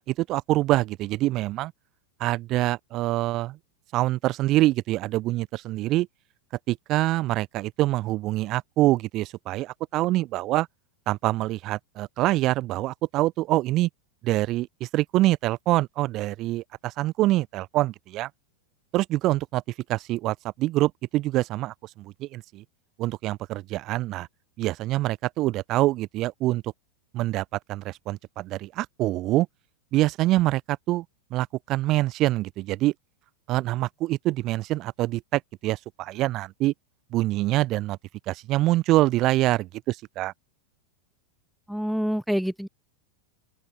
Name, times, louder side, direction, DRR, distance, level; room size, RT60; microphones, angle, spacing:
voice 1, 0.0-1.7 2.2-3.6 3.9-6.1 6.7-10.7 11.1-13.9 14.2-18.3 18.9-19.6 19.9-22.6 23.0-24.3 24.6-26.7 27.1-29.5 29.9-31.0 31.3-32.9 33.5-36.7 37.1-38.0 38.3-40.3, right 17 dB, 35° right, 0.9 m, -25 dB
voice 2, 41.7-42.7, equal, ahead, 0.5 m, -26 dB
open air
figure-of-eight pair, 90°, 0 cm